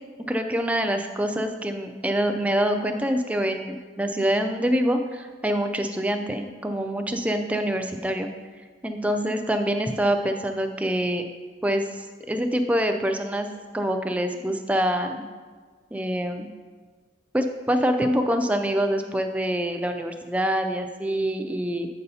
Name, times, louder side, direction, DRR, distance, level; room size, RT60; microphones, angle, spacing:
voice 1, 0.3-8.3 8.8-11.2 11.6-13.5 13.7-15.3 15.9-16.5 17.3-21.9, equal, 5° right, 5 dB, 0.3 m, -25 dB
8.7 x 5.4 x 2.7 m, 1.5 s
head